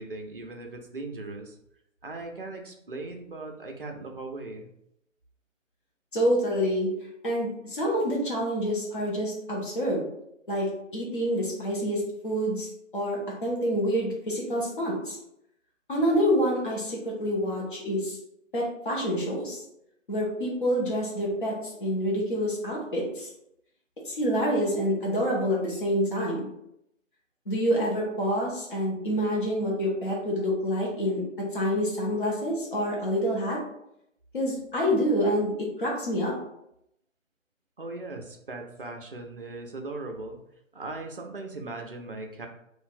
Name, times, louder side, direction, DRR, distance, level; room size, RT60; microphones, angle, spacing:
voice 1, 0.0-1.6 2.0-4.7 37.8-40.4 40.7-42.5, right 2 dB, 45° right, 3 dB, 0.5 m, -38 dB
voice 2, 6.1-6.9 7.2-10.1 10.5-12.7 12.9-15.2 15.9-18.2 18.5-19.6 20.1-23.3 24.0-26.5 27.5-33.6 34.3-36.3, equal, 40° left, -3 dB, 1.0 m, -27 dB
2.6 x 2.5 x 3.9 m, 0.77 s
figure-of-eight pair, 160°, 39 cm